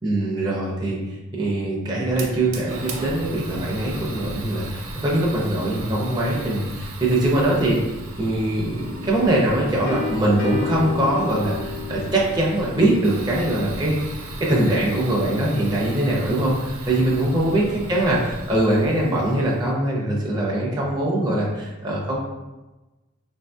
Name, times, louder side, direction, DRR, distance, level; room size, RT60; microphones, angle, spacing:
voice 1, 0.0-1.0 1.3-7.8 8.2-14.0 14.4-22.2, right 1 dB, 20° right, -5 dB, 0.5 m, -22 dB
Fire, 2.1-19.7, right 2 dB, 85° right, 0.5 m, -36 dB
sound 1, 8.8-14.5, left 4 dB, 65° left, 0.5 m, -33 dB
3.8 x 2.6 x 2.2 m, 1.1 s
head